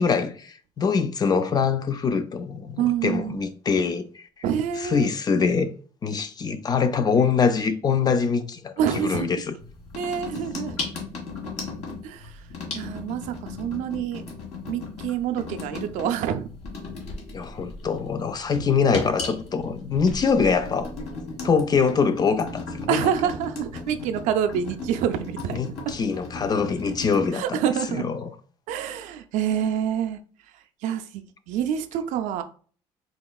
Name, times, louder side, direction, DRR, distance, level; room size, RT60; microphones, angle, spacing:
voice 1, 0.0-4.2 4.8-5.7 6.0-9.4 17.3-20.9 21.4-23.1 25.5-27.6 27.9-28.3, left 5 dB, 30° left, 0.5 m, -24 dB
voice 2, 2.8-3.4 4.4-5.1 8.8-9.3 10.0-10.8 12.0-12.4 12.7-14.3 14.7-16.5 22.9-25.9 27.3-28.1 28.7-30.2 30.8-32.4, right 9 dB, 75° right, 0.5 m, -27 dB
sound 1, 9.6-27.3, left 3 dB, 60° left, 1.6 m, -36 dB
4.2 x 2.9 x 2.3 m
supercardioid pair, 90°, 13 cm